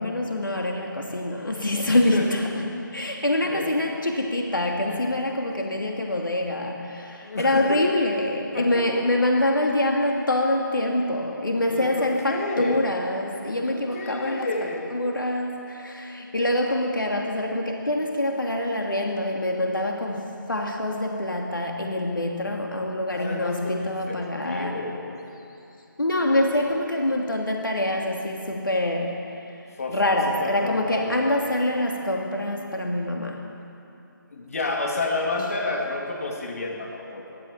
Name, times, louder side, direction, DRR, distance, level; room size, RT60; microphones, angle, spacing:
voice 1, 0.0-24.9 26.0-29.6 29.9-33.5, left 1 dB, 70° left, 1 dB, 2.7 m, -25 dB
voice 2, 1.9-2.3 3.4-3.7 7.2-8.0 8.5-9.1 11.7-12.8 13.6-14.9 23.1-25.2 26.4-26.5 29.8-31.7 34.3-37.4, left 2 dB, 45° left, 1 dB, 3.2 m, -31 dB
23.0 x 16.0 x 7.6 m, 2.8 s
figure-of-eight pair, 155°, 11 cm